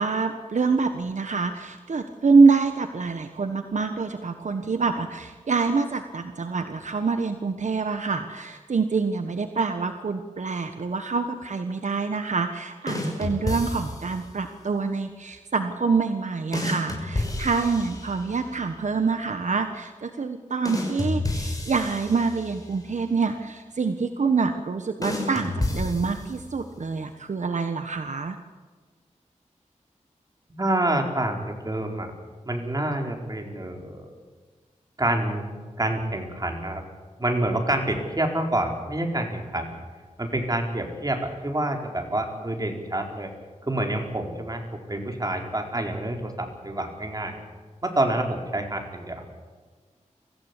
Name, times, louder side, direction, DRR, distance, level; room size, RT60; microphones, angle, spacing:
voice 1, 0.0-28.4, right 4 dB, 70° right, 7 dB, 1.3 m, -25 dB
sound 1, 12.9-14.3 16.5-18.5 20.6-22.8 25.0-26.6, left 1 dB, 30° left, 6.1 m, -30 dB
voice 2, 30.5-32.1 32.5-34.1 35.0-36.8 37.2-39.8 40.2-43.3 43.7-44.6 44.9-47.4 47.8-49.2, right 1 dB, 30° right, 3 dB, 4.4 m, -27 dB
24.0 x 15.5 x 8.5 m, 1.5 s
wide cardioid pair, 80°, 13 cm